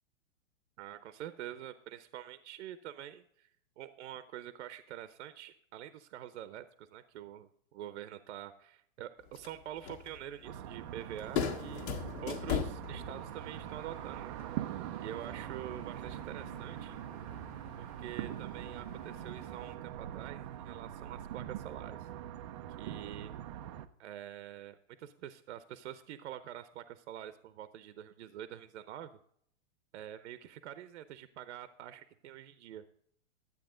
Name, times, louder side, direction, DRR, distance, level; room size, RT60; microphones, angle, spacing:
voice 1, 0.8-3.5 3.8-11.9 12.2-14.4 15.0-17.0 17.8-22.1 22.8-23.3 24.0-29.1 29.9-32.8, right 11 dB, 65° right, 13 dB, 0.8 m, -46 dB
sound 1, 9.2-19.8, left 7 dB, 60° left, 1.7 m, -42 dB
sound 2, 10.4-23.9, right 11 dB, 25° right, 0.4 m, -43 dB
12.0 x 8.4 x 3.8 m, 0.67 s
hypercardioid pair, 145°, 38 cm